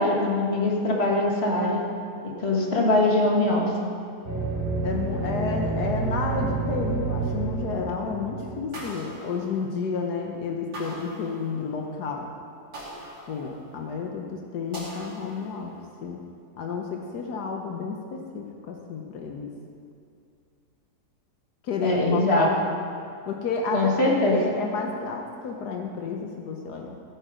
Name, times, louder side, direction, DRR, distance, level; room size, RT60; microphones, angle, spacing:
voice 1, 0.0-1.8 2.4-3.6 21.8-22.5 23.7-24.4, left 2 dB, 40° left, -2 dB, 2.1 m, -22 dB
sound 1, 4.2-9.0, right 3 dB, 30° right, 2.8 m, -29 dB
voice 2, 4.8-12.3 13.3-15.7 16.0-16.2 16.6-19.5 21.6-22.8 23.3-27.0, left 4 dB, 80° left, 2 dB, 1.5 m, -31 dB
sound 2, 8.7-10.1 10.7-11.9 12.7-14.0 14.7-15.9, equal, 85° right, 3.2 m, -42 dB
16.0 x 9.0 x 5.1 m, 2.4 s
omnidirectional pair, 1.7 m